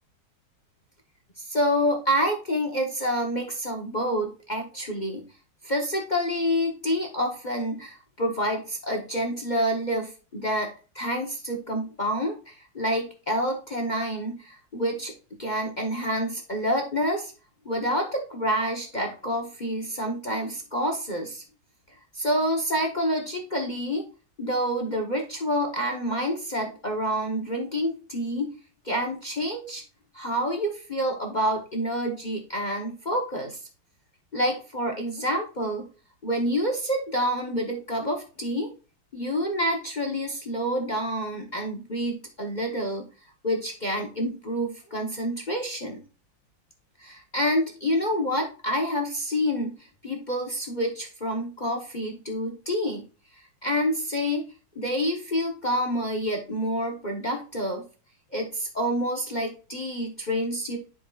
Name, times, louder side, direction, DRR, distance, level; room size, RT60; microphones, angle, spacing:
voice 1, 1.4-5.2 5.6-15.1 15.4-17.3 17.6-21.4 22.1-24.1 24.4-28.5 28.8-29.8 30.1-33.6 34.3-35.9 36.2-38.7 39.1-43.1 43.4-46.0 47.0-53.1 53.6-54.5 54.8-57.8 58.3-60.8, equal, 40° left, 2 dB, 0.6 m, -28 dB
9.9 x 5.3 x 2.4 m, 0.34 s
omnidirectional pair, 2.2 m